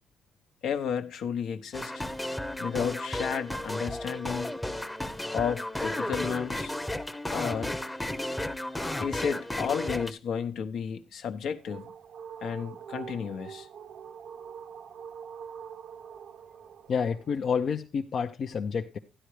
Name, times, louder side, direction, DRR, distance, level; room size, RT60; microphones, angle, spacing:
voice 1, 0.6-2.0 2.6-4.5 5.3-6.7 7.3-7.7 9.0-11.9 12.4-13.7, left 7 dB, 75° left, 1.0 m, -32 dB
sound 1, 1.7-10.1, left 1 dB, 10° left, 0.8 m, -33 dB
sound 2, 11.4-17.4, right 7 dB, 70° right, 0.8 m, -44 dB
voice 2, 16.9-19.0, left 6 dB, 55° left, 0.7 m, -29 dB
12.5 x 10.5 x 3.2 m
cardioid pair, 90°, 0 cm